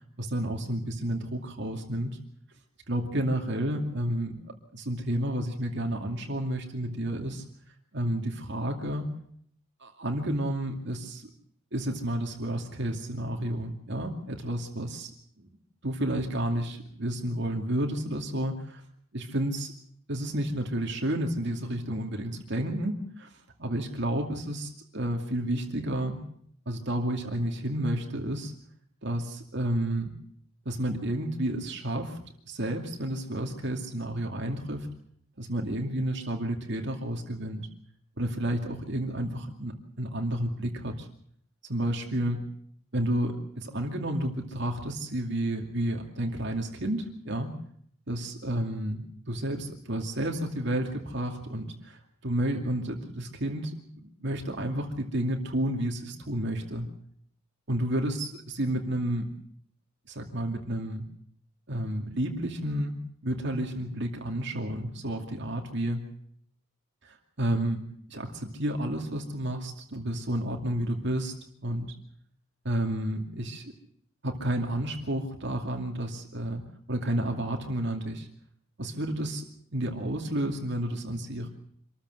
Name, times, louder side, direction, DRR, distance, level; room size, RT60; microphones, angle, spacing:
voice 1, 0.2-2.2 2.9-7.4 7.9-9.0 9.8-11.3 11.7-15.1 15.4-15.5 15.8-18.8 19.1-19.7 20.1-23.3 23.6-26.2 26.7-28.5 29.0-30.1 30.7-32.2 32.5-34.9 35.4-37.7 38.2-41.1 41.7-42.4 42.9-47.5 48.1-53.8 54.2-56.9 57.7-59.3 60.1-61.0 61.7-62.9 63.2-66.0 67.0-67.8 68.1-71.3 71.6-71.9 72.6-73.7 74.2-76.6 76.9-78.3 78.8-79.4 79.7-81.5, right 1 dB, 55° right, 2 dB, 2.4 m, -31 dB
26.0 x 14.0 x 7.9 m, 0.65 s
head